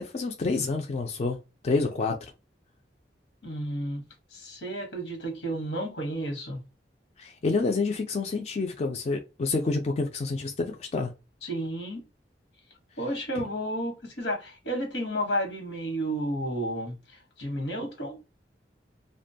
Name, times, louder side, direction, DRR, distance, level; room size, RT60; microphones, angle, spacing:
voice 1, 0.0-1.4 1.6-2.2 7.2-11.1 13.4-13.5, left 3 dB, 40° left, 0.4 m, -28 dB
voice 2, 3.4-4.0 4.3-6.6 11.4-12.0 13.0-18.2, right 1 dB, 85° left, 1.0 m, -32 dB
2.5 x 2.2 x 2.6 m
head